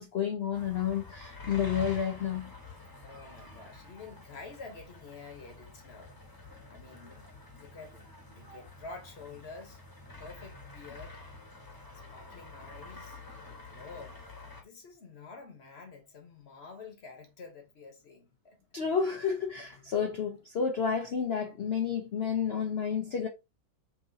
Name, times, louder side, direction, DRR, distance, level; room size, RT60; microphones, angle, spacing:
voice 1, 0.0-2.5 18.7-23.3, left 7 dB, 65° left, 0.6 m, -30 dB
sound 1, 0.5-14.6, left 3 dB, 15° left, 0.9 m, -48 dB
voice 2, 3.0-6.2 6.6-9.8 10.2-11.2 12.1-14.2 14.6-18.6, left 4 dB, 45° left, 1.1 m, -49 dB
5.9 x 2.8 x 2.7 m
omnidirectional pair, 1.9 m